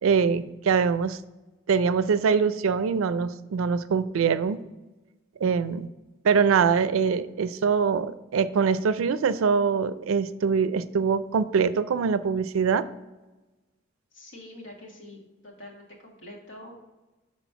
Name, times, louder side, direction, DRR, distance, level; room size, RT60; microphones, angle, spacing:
voice 1, 0.0-1.2 1.7-4.6 5.4-5.9 6.2-12.9, right 6 dB, 85° right, 14 dB, 0.4 m, -23 dB
voice 2, 14.1-16.7, left 1 dB, 65° left, -1 dB, 1.6 m, -45 dB
6.1 x 4.3 x 5.6 m, 1.1 s
head